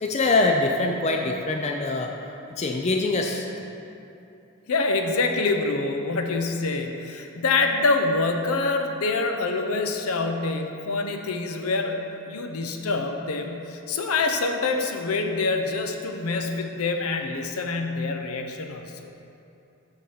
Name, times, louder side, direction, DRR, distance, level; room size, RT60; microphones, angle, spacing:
voice 1, 0.0-2.1 2.5-3.5, left 2 dB, 30° left, 2 dB, 0.4 m, -24 dB
voice 2, 4.7-19.1, left 3 dB, 80° left, 5 dB, 0.6 m, -26 dB
8.3 x 3.7 x 5.5 m, 2.8 s
head